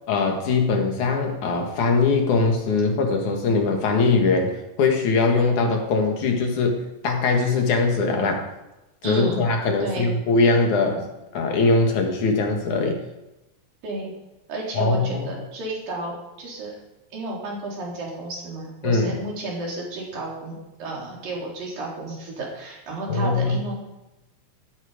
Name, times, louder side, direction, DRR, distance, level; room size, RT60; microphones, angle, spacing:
voice 1, 0.1-8.5 9.0-11.1 11.3-13.0 14.7-15.4 18.8-19.2 23.1-23.6, left 3 dB, 65° left, 3 dB, 3.0 m, -21 dB
voice 2, 9.0-9.4 9.8-10.1 13.8-14.1 14.5-16.8 17.1-23.7, right 2 dB, 80° right, -3 dB, 5.4 m, -32 dB
14.0 x 13.0 x 5.1 m, 0.97 s
omnidirectional pair, 4.0 m